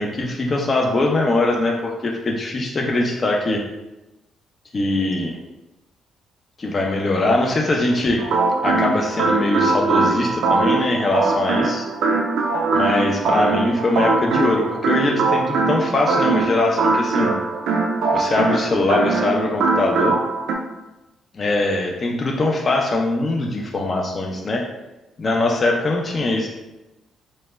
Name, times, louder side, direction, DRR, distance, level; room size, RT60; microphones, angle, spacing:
voice 1, 0.0-3.6 4.7-5.4 6.6-8.2 8.6-11.9 12.7-17.3 18.1-20.2 21.3-24.6 25.2-26.5, left 2 dB, 35° left, 0 dB, 0.3 m, -21 dB
sound 1, 8.2-20.6, right 3 dB, 75° right, 0.3 m, -21 dB
2.0 x 2.0 x 3.3 m, 1.0 s
cardioid pair, 90°, 0 cm